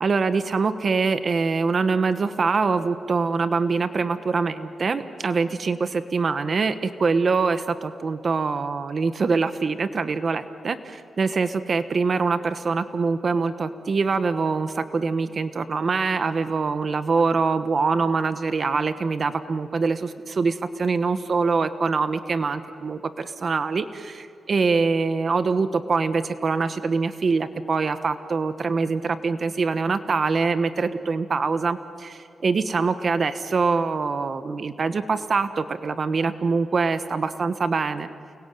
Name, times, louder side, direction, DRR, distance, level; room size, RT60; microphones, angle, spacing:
voice 1, 0.0-38.1, right 4 dB, 45° right, 11 dB, 1.2 m, -24 dB
29.5 x 21.0 x 9.3 m, 2.7 s
wide cardioid pair, 115°, 0 cm